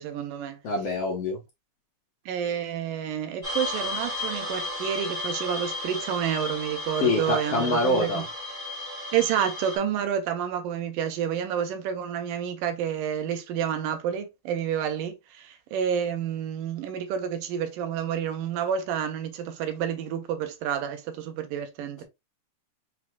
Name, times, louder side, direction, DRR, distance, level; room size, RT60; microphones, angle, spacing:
voice 1, 0.0-0.6 2.3-8.2 9.1-15.1 15.7-22.0, right 8 dB, 85° right, 2.4 m, -29 dB
voice 2, 0.6-1.4 7.0-8.2, left 2 dB, 60° left, 1.9 m, -25 dB
sound 1, 3.4-9.8, left 2 dB, 25° right, 1.1 m, -34 dB
6.0 x 3.1 x 2.2 m
omnidirectional pair, 3.7 m